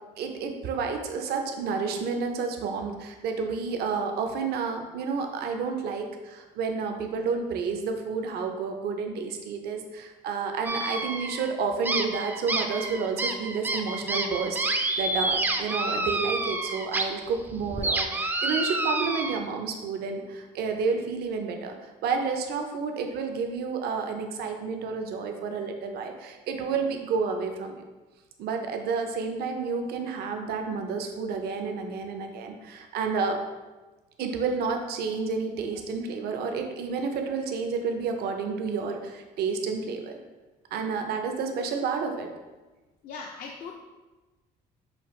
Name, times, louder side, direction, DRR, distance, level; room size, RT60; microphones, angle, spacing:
voice 1, 0.2-27.8 28.4-33.4 34.2-40.2 40.7-42.3, right 5 dB, 70° right, 4 dB, 0.6 m, -30 dB
sound 1, 10.6-11.5 11.8-17.0 17.4-19.4, right 2 dB, 10° right, 0.3 m, -29 dB
voice 2, 43.0-43.7, left 4 dB, 55° left, 1 dB, 0.4 m, -39 dB
5.7 x 2.4 x 3.1 m, 1.2 s
cardioid pair, 110°, 17 cm